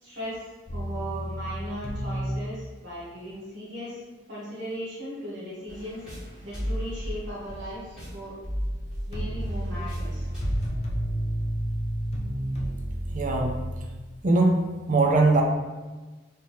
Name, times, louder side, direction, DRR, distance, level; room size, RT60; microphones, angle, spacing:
voice 1, 0.0-4.0 4.3-6.0 6.4-8.3 9.1-10.3, equal, 75° right, -8 dB, 1.4 m, -37 dB
sound 1, 0.7-2.3 9.1-13.6, equal, 35° left, 0.5 m, -30 dB
sound 2, 5.7-10.7, equal, 5° right, 1.4 m, -34 dB
voice 2, 13.1-13.6 14.2-14.6 14.9-15.4, right 2 dB, 45° right, 1 dB, 0.5 m, -21 dB
3.5 x 2.7 x 3.0 m, 1.2 s
head